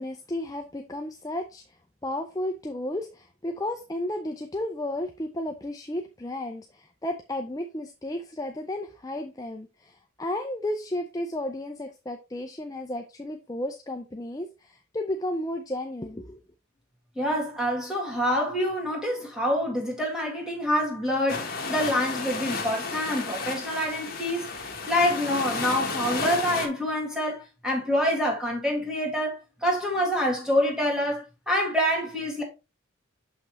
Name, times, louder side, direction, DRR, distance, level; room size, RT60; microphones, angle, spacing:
voice 1, 0.0-16.4, left 1 dB, 15° left, 0.5 m, -33 dB
voice 2, 17.2-24.5 24.9-32.4, equal, 5° right, 2.1 m, -26 dB
sound 1, 21.3-26.7, left 3 dB, 45° left, 1.5 m, -32 dB
6.7 x 5.7 x 3.2 m
head